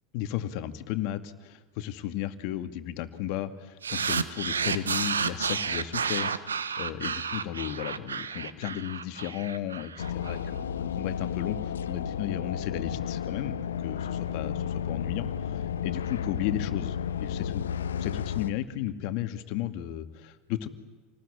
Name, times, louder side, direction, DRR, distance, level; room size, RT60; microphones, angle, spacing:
voice 1, 0.1-13.6 13.8-17.6 18.0-20.7, left 12 dB, 60° left, 9 dB, 2.2 m, -34 dB
sound 1, 3.8-10.4, right 6 dB, 85° right, 1.3 m, -31 dB
sound 2, 10.0-18.5, left 8 dB, 80° left, 1.1 m, -32 dB
28.0 x 19.5 x 9.9 m, 1.3 s
hypercardioid pair, 80°, 0 cm